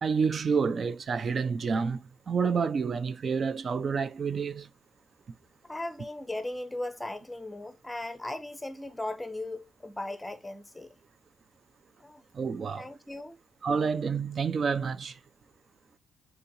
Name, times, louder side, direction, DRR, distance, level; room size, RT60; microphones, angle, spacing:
voice 1, 0.0-4.7 12.3-12.9 13.6-15.2, right 5 dB, 45° right, 0.3 m, -29 dB
voice 2, 5.6-10.9 12.0-12.2 12.7-13.4, left 1 dB, 10° left, 0.6 m, -37 dB
3.7 x 2.8 x 2.6 m
cardioid pair, 90°, 0 cm